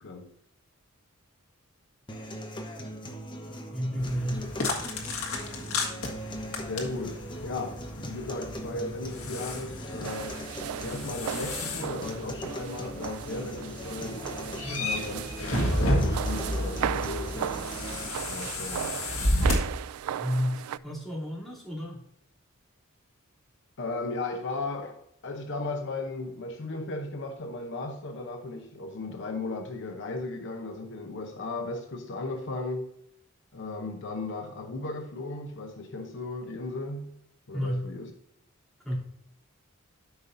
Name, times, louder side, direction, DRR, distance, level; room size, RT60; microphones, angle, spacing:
voice 1, 0.0-0.3 6.6-10.5 10.8-14.3 14.8-17.7 18.3-19.0 23.8-33.0 33.5-37.1 37.5-38.1, left 2 dB, 60° left, 0.8 m, -36 dB
sound 1, 2.1-18.1, equal, 20° left, 0.9 m, -40 dB
voice 2, 3.4-4.5 14.6-14.9 20.0-22.0 37.5-37.8 38.8-39.0, equal, ahead, 3.0 m, -32 dB
sound 2, 4.0-19.6, left 1 dB, 80° left, 1.7 m, -32 dB
sound 3, 10.0-20.8, right 10 dB, 80° right, 0.3 m, -37 dB
13.0 x 5.5 x 2.6 m
head